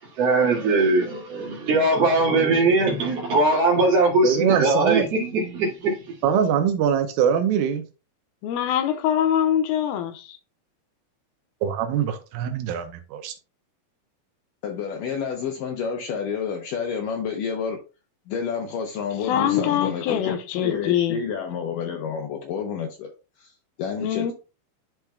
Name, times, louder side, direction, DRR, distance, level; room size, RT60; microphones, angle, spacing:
voice 1, 0.2-6.0, right 2 dB, 45° right, 2.7 m, -20 dB
voice 2, 4.2-5.1 6.2-7.8 11.6-13.3, right 8 dB, 80° right, 2.3 m, -23 dB
voice 3, 8.4-10.4 19.3-21.2 24.0-24.3, left 10 dB, 90° left, 2.6 m, -23 dB
voice 4, 14.6-17.8 18.3-20.4 20.6-23.1 23.4-23.5 23.8-24.3, left 6 dB, 75° left, 2.1 m, -29 dB
11.5 x 4.5 x 2.2 m
omnidirectional pair, 4.3 m